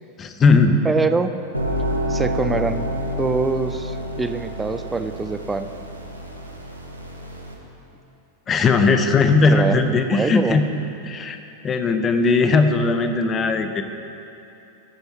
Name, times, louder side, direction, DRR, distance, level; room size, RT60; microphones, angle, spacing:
voice 1, 0.2-0.9 8.5-10.6 11.0-11.4 11.6-13.8, left 4 dB, 25° left, 7 dB, 0.8 m, -18 dB
voice 2, 0.8-1.3 2.1-2.9 3.2-5.7 8.6-9.0 9.5-10.6, right 4 dB, 10° right, 9 dB, 0.5 m, -24 dB
sound 1, 1.5-7.5, equal, 85° right, 1.1 m, -28 dB
15.0 x 8.1 x 4.1 m, 2.8 s
figure-of-eight pair, 90°, 0 cm